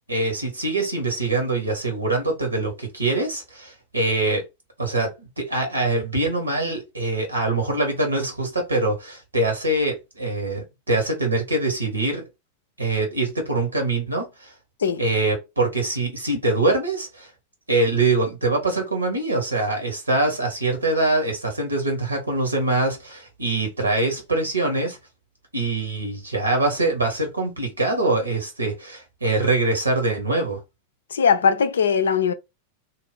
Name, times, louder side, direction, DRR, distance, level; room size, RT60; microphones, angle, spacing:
voice 1, 0.1-4.4 4.8-12.2 12.8-14.5 15.0-17.3 17.7-25.0 25.5-30.6, right 2 dB, 80° right, 1.3 m, -24 dB
voice 2, 31.1-32.3, left 6 dB, 65° left, 0.4 m, -19 dB
2.7 x 2.4 x 3.4 m
figure-of-eight pair, 90°, 0 cm